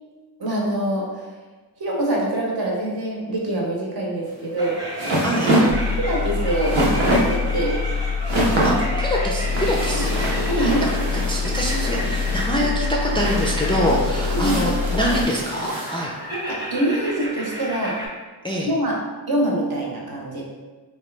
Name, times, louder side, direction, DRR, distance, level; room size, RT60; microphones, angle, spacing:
voice 1, 0.4-1.1 1.8-4.8 5.2-5.4 6.0-7.8 9.9-10.1 10.5-10.9 13.6-13.7 14.3-14.6 16.0-18.0 18.6-19.0 19.3-20.4, right 1 dB, 55° right, -3 dB, 0.9 m, -25 dB
sound 1, 4.3-16.0, right 1 dB, 85° right, 0.9 m, -25 dB
sound 2, 4.6-18.1, equal, 10° right, 0.9 m, -33 dB
voice 2, 5.2-5.5 8.6-10.1 10.6-10.9 11.3-16.1 18.4-18.7, equal, 10° left, -3 dB, 0.4 m, -25 dB
sound 3, 5.7-15.3, left 6 dB, 90° left, 0.6 m, -26 dB
3.0 x 2.3 x 3.3 m, 1.3 s
cardioid pair, 55°, 43 cm